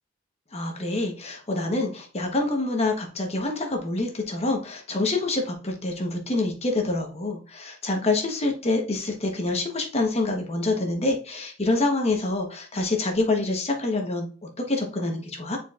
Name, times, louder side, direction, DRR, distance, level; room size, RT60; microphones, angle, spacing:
voice 1, 0.5-15.6, left 2 dB, 30° left, 2 dB, 1.1 m, -26 dB
9.0 x 4.3 x 2.4 m, 0.39 s
head